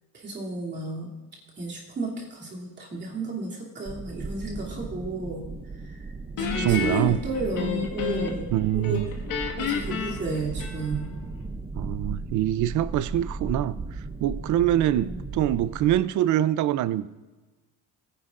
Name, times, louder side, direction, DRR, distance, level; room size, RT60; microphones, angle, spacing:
voice 1, 0.1-1.1 1.6-5.4 5.8-6.0 6.4-9.0 9.6-11.1 14.9-15.2, right 2 dB, 30° right, 2.9 m, -32 dB
sound 1, 3.9-16.0, right 3 dB, 15° right, 0.5 m, -36 dB
Guitar, 6.4-8.5 8.8-11.1, left 6 dB, 75° left, 1.8 m, -31 dB
voice 2, 6.5-7.2 8.5-9.1 11.7-17.1, right 12 dB, 60° right, 0.5 m, -24 dB
21.0 x 9.9 x 2.5 m
cardioid pair, 160°, 33 cm